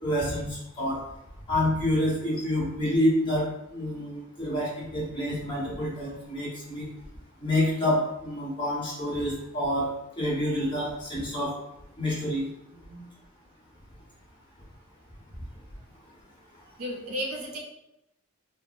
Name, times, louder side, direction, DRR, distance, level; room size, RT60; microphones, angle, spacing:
voice 1, 0.0-1.0 1.5-6.8 7.4-9.9 10.2-11.5 12.0-12.4, left 1 dB, 25° left, -7 dB, 1.1 m, -28 dB
voice 2, 16.8-17.6, equal, 75° right, -1 dB, 0.6 m, -33 dB
3.4 x 2.0 x 2.5 m, 0.86 s
head